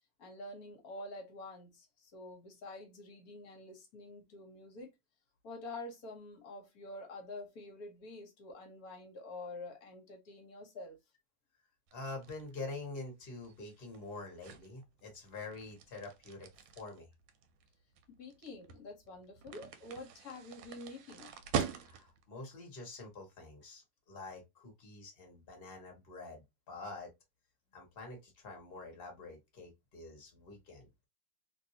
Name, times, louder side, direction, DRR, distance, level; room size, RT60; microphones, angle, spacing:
voice 1, 0.2-4.9 5.4-11.0 18.1-21.3, left 2 dB, 55° left, 1.2 m, -48 dB
voice 2, 11.9-16.5 16.8-17.1 21.7-27.1 27.7-30.9, left 3 dB, 35° left, 1.1 m, -46 dB
sound 1, 11.9-22.3, right 7 dB, 85° right, 1.4 m, -43 dB
3.1 x 2.6 x 2.6 m
omnidirectional pair, 2.3 m